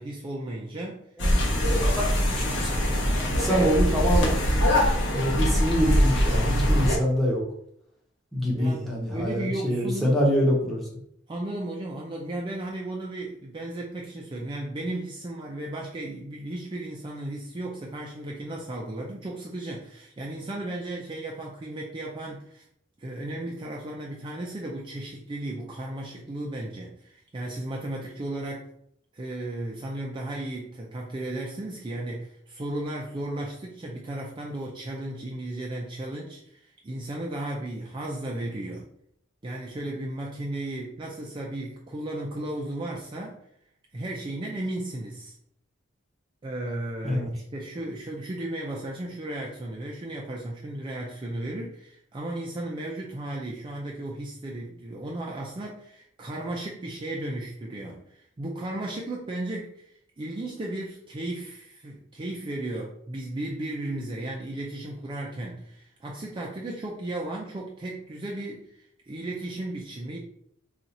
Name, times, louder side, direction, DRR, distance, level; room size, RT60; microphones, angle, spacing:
voice 1, 0.0-1.1 1.7-1.9 3.4-3.8 8.5-8.9 9.1-10.2 11.3-22.6 23.0-28.7 29.1-38.8 39.4-43.4 43.9-45.4 46.4-70.2, right 1 dB, 25° right, -2 dB, 0.4 m, -35 dB
sound 1, 1.2-7.0, equal, 65° left, 0.9 m, -23 dB
voice 2, 1.2-4.4 5.1-7.4 8.3-10.9 47.0-47.3, equal, ahead, -4 dB, 0.9 m, -26 dB
2.6 x 2.4 x 4.1 m, 0.70 s
head